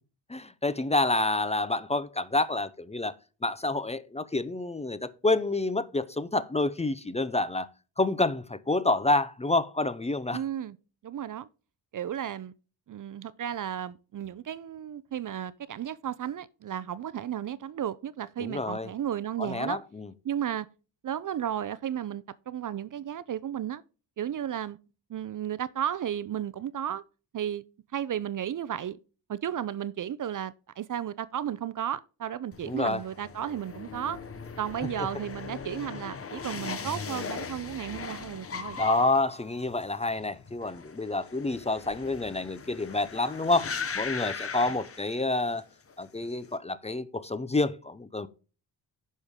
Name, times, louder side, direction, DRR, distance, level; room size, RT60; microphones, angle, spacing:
voice 1, 0.3-3.1 3.4-7.7 8.0-10.4 18.4-18.9 19.4-20.1 32.6-33.0 38.8-45.6 46.0-48.3, left 2 dB, 15° left, 0.6 m, -28 dB
voice 2, 10.3-10.8 11.0-11.5 11.9-12.5 12.9-19.8 20.2-20.7 21.0-23.8 24.2-24.8 25.1-27.0 27.3-27.6 27.9-29.0 29.3-34.2 34.6-38.8, right 10 dB, 45° right, 0.5 m, -34 dB
sound 1, 32.5-45.6 45.9-46.5, left 5 dB, 30° left, 1.1 m, -39 dB
10.5 x 6.5 x 3.6 m
cardioid pair, 125°, 43 cm